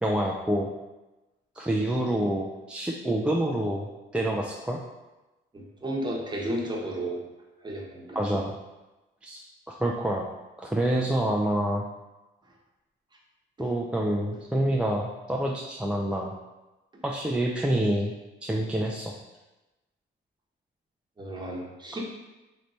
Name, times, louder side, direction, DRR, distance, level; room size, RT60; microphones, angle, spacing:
voice 1, 0.0-0.7 1.6-4.8 8.2-8.5 9.2-9.4 9.7-10.3 10.6-11.9 13.6-16.3 17.0-18.1 18.4-19.1, right 1 dB, 5° right, -2 dB, 0.3 m, -27 dB
voice 2, 5.5-7.2 7.6-8.2 21.2-22.0, right 1 dB, 20° right, -2 dB, 1.0 m, -33 dB
3.2 x 2.6 x 4.2 m, 1.1 s
cardioid pair, 90°, 20 cm